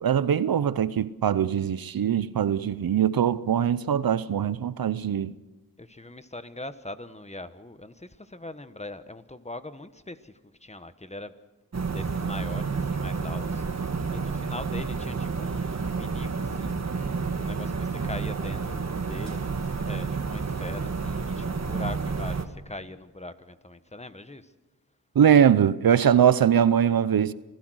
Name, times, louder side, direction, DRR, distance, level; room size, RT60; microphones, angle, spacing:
voice 1, 0.0-5.3 25.1-27.3, right 9 dB, 70° right, 0.8 m, -22 dB
voice 2, 5.8-11.3 11.9-24.5, left 2 dB, 20° left, 1.3 m, -41 dB
sound 1, 11.7-22.4, right 4 dB, 45° right, 1.7 m, -30 dB
26.5 x 16.5 x 6.4 m
cardioid pair, 60°, 37 cm